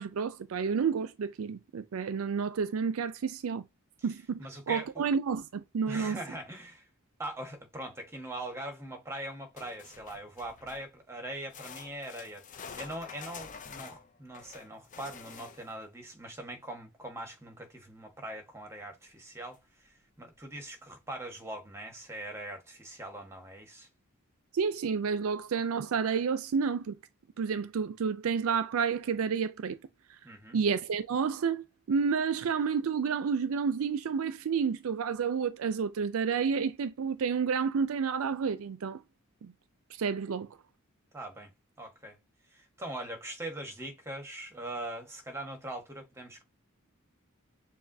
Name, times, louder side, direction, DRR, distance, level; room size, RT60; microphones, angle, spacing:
voice 1, 0.0-3.6 4.0-6.2 24.5-27.0 27.4-29.8 30.5-39.0 39.4-39.5 40.0-40.5, right 6 dB, 75° right, 0.4 m, -30 dB
voice 2, 4.4-5.1 5.9-6.9 7.2-23.9 30.2-30.6 41.1-41.5 41.8-42.2 42.5-46.4, right 1 dB, 15° right, 1.4 m, -42 dB
sound 1, 9.6-10.9 11.5-15.8 19.1-19.2 19.5-19.6 20.3-20.4, left 6 dB, 35° left, 0.5 m, -48 dB
6.9 x 2.6 x 2.7 m
head